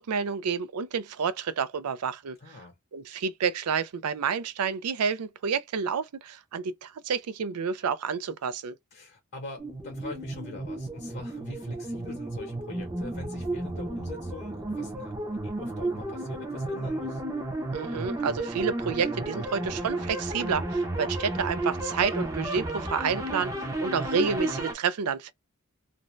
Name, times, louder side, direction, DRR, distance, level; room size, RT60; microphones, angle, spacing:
voice 1, 0.0-2.4 2.9-8.8 17.7-25.3, right 6 dB, 90° right, 0.4 m, -29 dB
voice 2, 2.4-2.8 8.9-15.1 15.4-17.2, left 2 dB, 50° left, 0.9 m, -43 dB
sound 1, 9.6-24.7, right 2 dB, 15° right, 0.7 m, -33 dB
2.6 x 2.1 x 3.1 m
head